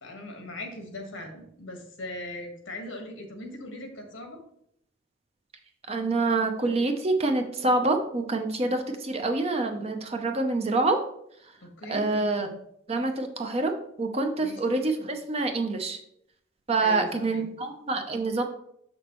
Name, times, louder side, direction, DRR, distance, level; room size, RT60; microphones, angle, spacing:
voice 1, 0.0-4.4 11.6-12.1 14.4-14.6 16.8-17.4, left 1 dB, 70° left, 4 dB, 1.4 m, -39 dB
voice 2, 5.9-11.0 11.9-12.5 12.9-13.7 14.0-16.0 16.7-18.4, right 2 dB, 30° right, 5 dB, 0.6 m, -26 dB
6.3 x 6.1 x 3.0 m, 0.73 s
head